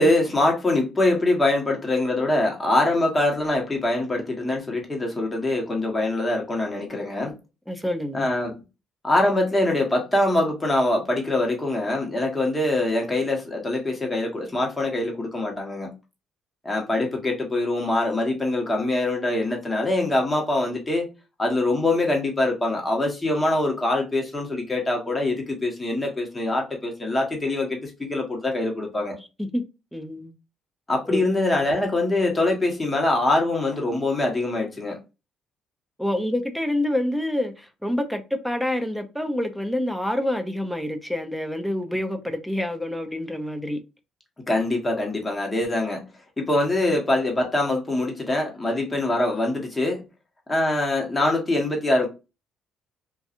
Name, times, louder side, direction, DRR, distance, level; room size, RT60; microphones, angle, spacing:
voice 1, 0.0-7.4 8.1-8.6 9.0-15.9 16.6-21.1 21.4-29.2 30.9-35.0 44.5-46.0 46.4-50.0 50.5-52.1, left 2 dB, 20° left, 1.1 m, -23 dB
voice 2, 7.7-8.3 29.4-29.6 29.9-30.3 31.1-31.2 36.0-43.8, left 1 dB, ahead, 0.6 m, -27 dB
2.6 x 2.3 x 2.5 m
cardioid pair, 80°, 0 cm